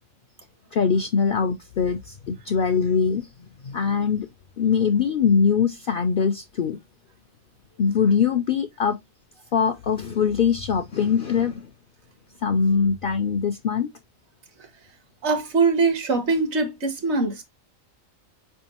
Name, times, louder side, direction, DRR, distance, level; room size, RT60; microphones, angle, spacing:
voice 1, 0.7-4.3 4.6-6.8 7.8-9.0 9.5-11.7 12.4-13.9, left 6 dB, 60° left, 0.6 m, -22 dB
voice 2, 15.2-17.4, right 4 dB, 60° right, 1.2 m, -22 dB
4.8 x 3.6 x 2.9 m
omnidirectional pair, 1.4 m